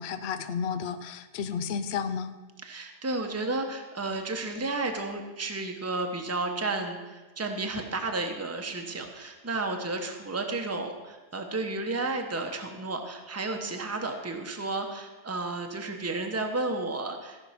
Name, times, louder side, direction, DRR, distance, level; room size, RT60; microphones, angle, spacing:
voice 1, 0.0-2.3, left 6 dB, 65° left, 12 dB, 0.8 m, -32 dB
voice 2, 2.6-17.4, right 2 dB, 15° right, 4 dB, 0.9 m, -32 dB
15.0 x 5.7 x 5.7 m, 1.2 s
omnidirectional pair, 1.3 m